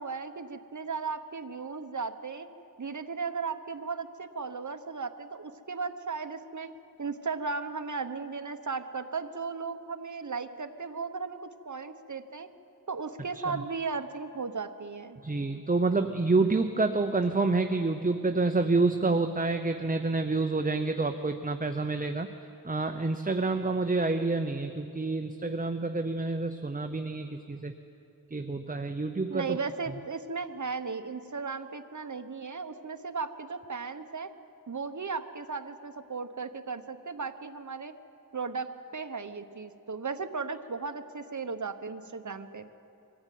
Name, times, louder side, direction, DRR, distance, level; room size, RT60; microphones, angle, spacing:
voice 1, 0.0-2.5 2.8-6.7 7.0-12.5 12.9-15.2 29.3-34.3 34.7-37.9 38.3-42.7, right 4 dB, 50° right, 8 dB, 1.1 m, -36 dB
voice 2, 15.2-22.3 22.6-27.7 28.3-29.6, right 3 dB, 20° right, 7 dB, 0.7 m, -28 dB
23.0 x 15.0 x 9.3 m, 2.8 s
wide cardioid pair, 80°, 38 cm